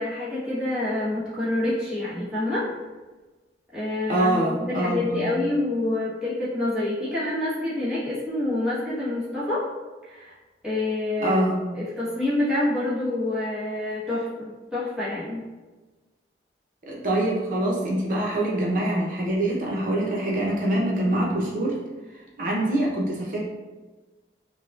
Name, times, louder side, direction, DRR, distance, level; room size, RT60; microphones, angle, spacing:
voice 1, 0.0-2.6 3.7-9.6 10.0-10.3 10.6-11.4 11.7-15.4, left 2 dB, 5° right, -11 dB, 1.3 m, -27 dB
voice 2, 4.1-5.3 11.2-11.6 16.9-21.8 22.1-23.4, right 1 dB, 50° right, -3 dB, 0.9 m, -25 dB
5.3 x 2.3 x 2.5 m, 1.2 s
head